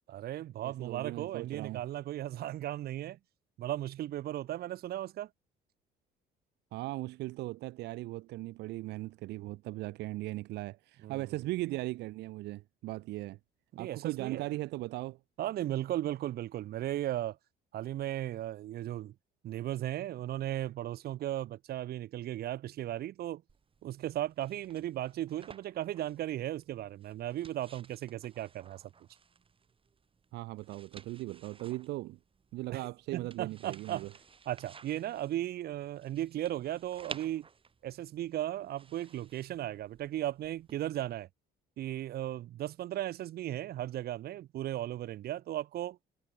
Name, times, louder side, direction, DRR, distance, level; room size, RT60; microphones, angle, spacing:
voice 1, 0.1-3.2 3.6-5.3 11.0-11.3 13.7-14.4 15.4-17.4 17.7-19.1 19.4-23.4 23.8-28.8 32.7-34.1 34.4-37.5 37.8-41.3 41.8-46.0, right 13 dB, 65° right, 3.4 m, -36 dB
voice 2, 0.6-1.8 6.7-13.4 13.8-15.2 30.3-32.2 32.5-34.1, right 18 dB, 85° right, 2.2 m, -38 dB
sound 1, 23.5-40.7, right 5 dB, 30° right, 6.5 m, -55 dB
cardioid pair, 110°, 17 cm